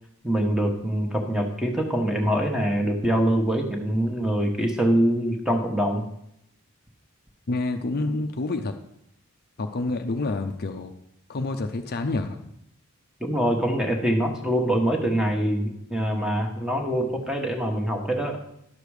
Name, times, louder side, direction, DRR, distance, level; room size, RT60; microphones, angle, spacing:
voice 1, 0.2-6.0 13.2-18.4, equal, 5° right, 2 dB, 1.2 m, -24 dB
voice 2, 7.5-8.7 9.6-10.9 11.3-12.4, left 2 dB, 45° left, 6 dB, 0.5 m, -28 dB
11.5 x 6.7 x 4.8 m, 0.76 s
head